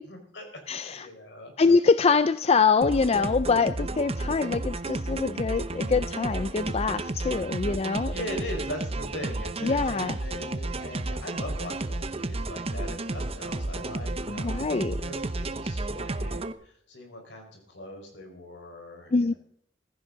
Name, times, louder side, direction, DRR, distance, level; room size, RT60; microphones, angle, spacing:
voice 1, 0.1-1.7 7.6-7.7 8.1-19.4, left 1 dB, 70° left, 3 dB, 5.1 m, -41 dB
voice 2, 0.7-1.1 1.6-8.1 9.6-10.2 14.3-15.0 19.1-19.3, left 4 dB, 35° left, 13 dB, 0.4 m, -24 dB
sound 1, 2.8-16.5, right 2 dB, 35° right, 0.8 m, -32 dB
16.0 x 15.0 x 3.9 m, 0.68 s
head